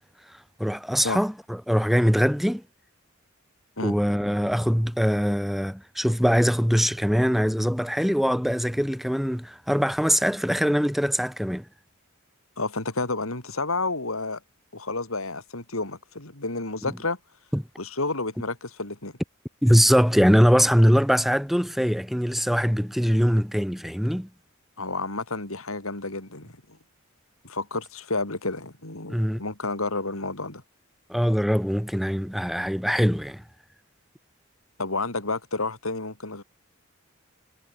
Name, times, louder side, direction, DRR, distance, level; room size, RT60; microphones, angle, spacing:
voice 1, 0.6-2.6 3.8-11.6 17.5-17.6 19.6-24.3 29.1-29.4 31.1-33.4, equal, ahead, 2.5 m, -22 dB
voice 2, 12.6-14.4 14.7-17.2 17.8-19.1 24.8-26.6 27.4-30.6 34.8-36.4, left 3 dB, 85° left, 4.6 m, -30 dB
head